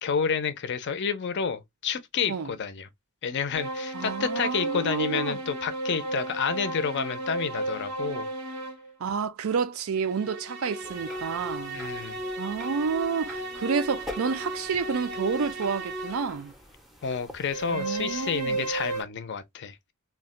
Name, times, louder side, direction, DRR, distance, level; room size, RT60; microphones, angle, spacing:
voice 1, 0.0-2.9 3.2-8.3 11.7-12.2 17.0-19.9, left 6 dB, 55° left, 0.5 m, -30 dB
sound 1, 3.5-8.9 9.9-16.4 17.4-19.0, right 2 dB, 85° right, 0.9 m, -34 dB
voice 2, 3.9-5.4 9.0-11.8 12.4-16.5 17.7-18.6, right 5 dB, 70° right, 0.4 m, -30 dB
sound 2, 10.8-19.0, left 1 dB, ahead, 0.5 m, -47 dB
2.3 x 2.1 x 3.6 m
head